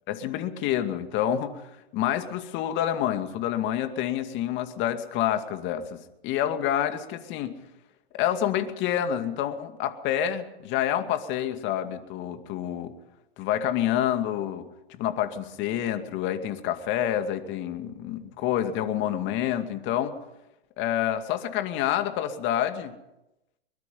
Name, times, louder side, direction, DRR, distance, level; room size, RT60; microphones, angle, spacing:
voice 1, 0.1-7.5 8.1-12.9 13.4-14.6 15.0-20.2 20.8-22.9, left 11 dB, 40° left, 8 dB, 2.3 m, -28 dB
23.0 x 22.0 x 5.5 m, 0.92 s
hypercardioid pair, 120°, 31 cm